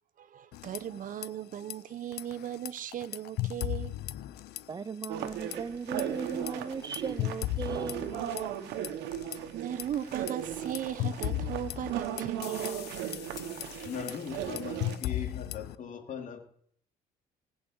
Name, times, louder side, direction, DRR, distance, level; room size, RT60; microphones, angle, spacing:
voice 1, 0.2-3.9 9.5-13.0, right 10 dB, 50° right, 1.0 m, -37 dB
sound 1, 0.5-1.3 1.5-1.7 2.1-4.8 5.0-5.6 6.0-9.4 9.8-15.8, left 15 dB, 80° left, 0.7 m, -36 dB
voice 2, 4.7-8.1, right 5 dB, 25° right, 0.7 m, -37 dB
sound 2, 5.1-15.0, right 10 dB, 85° right, 1.5 m, -37 dB
voice 3, 13.6-16.4, left 6 dB, 50° left, 2.9 m, -39 dB
19.0 x 6.4 x 8.1 m
cardioid pair, 110°, 17 cm